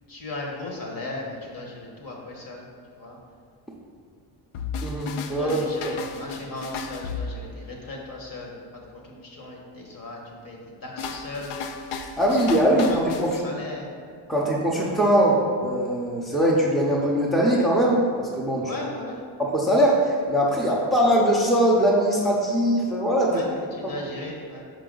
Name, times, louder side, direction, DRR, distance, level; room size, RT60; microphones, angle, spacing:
voice 1, 0.1-2.7 2.9-3.2 5.3-11.6 12.5-13.9 18.6-19.2 23.3-24.6, left 2 dB, 45° left, -1 dB, 1.3 m, -37 dB
sound 1, 4.5-8.0 11.0-13.5, left 4 dB, 80° left, 0.6 m, -34 dB
voice 2, 4.8-5.6 5.8-6.0 12.2-13.3 14.3-18.6 19.4-23.3 23.8-24.0, equal, ahead, -4 dB, 0.7 m, -21 dB
5.6 x 5.1 x 3.9 m, 2.2 s
cardioid pair, 125°, 49 cm